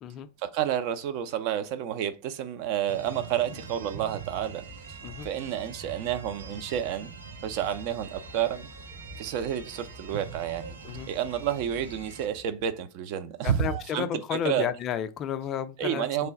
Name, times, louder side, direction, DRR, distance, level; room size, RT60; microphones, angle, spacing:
voice 1, 0.4-5.0 5.2-7.1 7.4-8.7 9.2-10.8 11.1-14.7 15.8-16.3, right 10 dB, 45° right, 0.4 m, -30 dB
sound 1, 2.9-12.3, right 5 dB, 80° right, 1.3 m, -44 dB
sound 2, 3.8-12.9, left 1 dB, 5° right, 0.6 m, -50 dB
voice 2, 13.4-16.3, left 9 dB, 30° left, 0.3 m, -32 dB
3.2 x 2.2 x 3.7 m
figure-of-eight pair, 90°, 0 cm